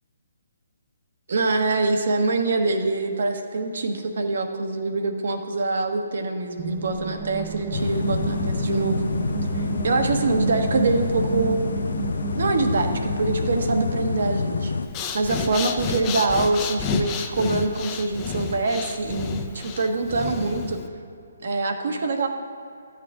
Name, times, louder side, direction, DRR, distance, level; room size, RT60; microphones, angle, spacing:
voice 1, 1.3-9.0 9.5-11.6 12.4-14.7 15.1-20.8 21.4-22.3, right 3 dB, 65° right, 4 dB, 1.3 m, -24 dB
sound 1, 6.6-14.4, right 10 dB, 25° right, 0.5 m, -33 dB
sound 2, 7.7-14.9, left 4 dB, 75° left, 0.5 m, -27 dB
Breathing, 14.8-20.9, left 5 dB, 25° left, 0.7 m, -30 dB
13.5 x 8.6 x 3.7 m, 2.5 s
hypercardioid pair, 150°, 0 cm